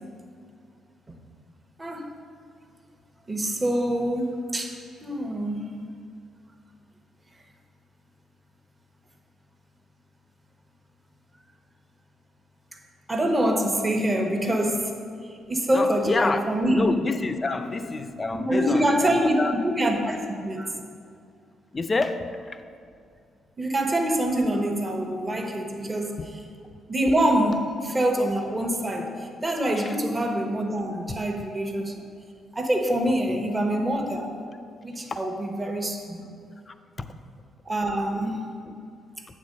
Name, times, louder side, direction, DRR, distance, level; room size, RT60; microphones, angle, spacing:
voice 1, 1.8-2.1 3.3-5.7 13.1-14.9 15.5-17.0 18.3-19.3 19.6-20.8 23.6-26.2 26.9-32.0 32.5-34.3 34.8-36.2 37.6-38.5, right 1 dB, 20° right, 3 dB, 1.0 m, -25 dB
voice 2, 15.7-16.4 16.7-19.5 21.7-22.6 29.8-30.0 33.3-33.5 35.1-35.2 36.7-37.1 38.7-38.8, left 3 dB, 30° left, 9 dB, 0.5 m, -28 dB
8.7 x 3.7 x 6.5 m, 2.4 s
cardioid pair, 90°, 0 cm